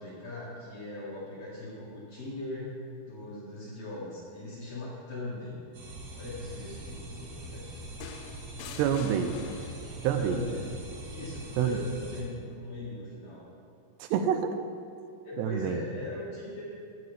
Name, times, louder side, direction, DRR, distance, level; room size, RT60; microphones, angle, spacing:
voice 1, 0.0-2.8 3.1-5.7 6.1-7.8 10.2-10.8 11.1-13.5 15.2-16.6, left 2 dB, 50° left, -7 dB, 2.2 m, -39 dB
sound 1, 5.7-12.2, right 2 dB, 60° right, 1.6 m, -43 dB
sound 2, 8.0-10.1 11.5-11.8, left 8 dB, 85° left, 2.7 m, -45 dB
voice 2, 8.8-9.4 10.0-10.4 11.6-11.8 14.0-14.5 15.4-15.8, right 9 dB, 85° right, 8 dB, 2.7 m, -27 dB
15.5 x 7.9 x 3.4 m, 2.6 s
omnidirectional pair, 4.8 m